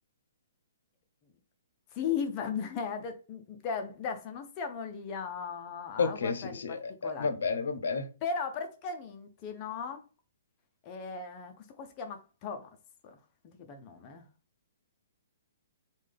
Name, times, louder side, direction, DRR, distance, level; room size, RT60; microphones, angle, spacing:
voice 1, 1.9-6.8 7.0-7.3 8.2-10.0 10.8-12.7 13.0-13.2 13.4-14.2, left 6 dB, 20° left, 0.4 m, -37 dB
voice 2, 6.0-8.1, left 5 dB, 75° left, 0.5 m, -31 dB
3.5 x 2.1 x 3.3 m
hypercardioid pair, 180°, 0 cm